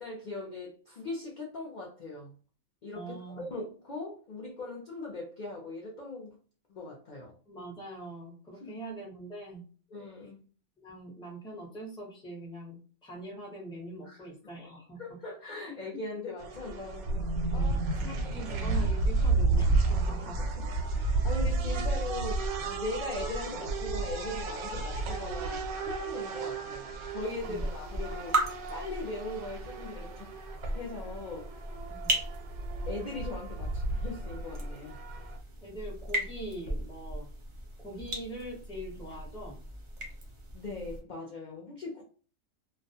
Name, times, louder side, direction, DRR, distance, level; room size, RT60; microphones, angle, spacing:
voice 1, 0.0-2.3 2.8-6.4 6.7-7.3 8.6-8.9 9.9-10.4 14.0-14.2 15.0-18.2 20.6-28.3 28.7-30.3 30.7-31.5 32.9-35.0 40.5-42.0, left 2 dB, 60° left, -2 dB, 0.5 m, -40 dB
voice 2, 2.9-3.5 7.5-9.6 10.8-15.0 15.7-15.8 17.5-20.4 27.4-27.7 28.1-28.3 31.9-32.1 35.6-37.3 37.8-39.6, right 1 dB, 5° left, -1 dB, 0.5 m, -43 dB
sound 1, 16.4-35.4, right 3 dB, 85° right, 1.0 m, -32 dB
sound 2, 27.2-41.0, right 1 dB, 50° right, 0.3 m, -37 dB
2.3 x 2.1 x 2.7 m, 0.39 s
omnidirectional pair, 1.5 m